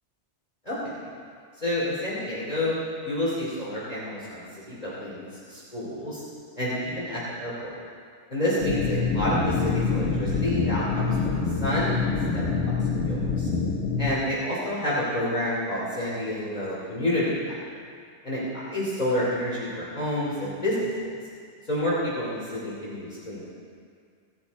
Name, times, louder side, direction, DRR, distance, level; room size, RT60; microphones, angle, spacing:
voice 1, 0.6-0.9 1.6-2.8 3.0-6.2 6.6-7.8 8.3-12.5 13.0-13.5 14.0-17.6 18.2-21.1 21.7-23.5, left 1 dB, 35° left, -8 dB, 3.1 m, -29 dB
sound 1, 8.6-14.1, left 4 dB, 80° left, 1.7 m, -26 dB
17.5 x 12.0 x 4.2 m, 2.2 s
omnidirectional pair, 1.2 m